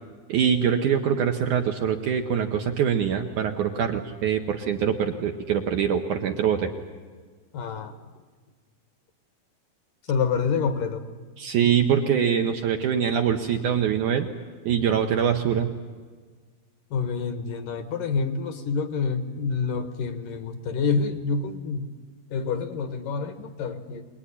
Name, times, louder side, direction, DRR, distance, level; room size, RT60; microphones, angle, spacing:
voice 1, 0.3-6.7 11.4-14.3 14.7-15.7, right 8 dB, 65° right, 4 dB, 2.1 m, -24 dB
voice 2, 7.5-7.9 10.1-11.0 16.9-21.9 22.3-24.1, left 5 dB, 65° left, 9 dB, 2.5 m, -27 dB
25.5 x 20.0 x 10.0 m, 1.5 s
omnidirectional pair, 4.6 m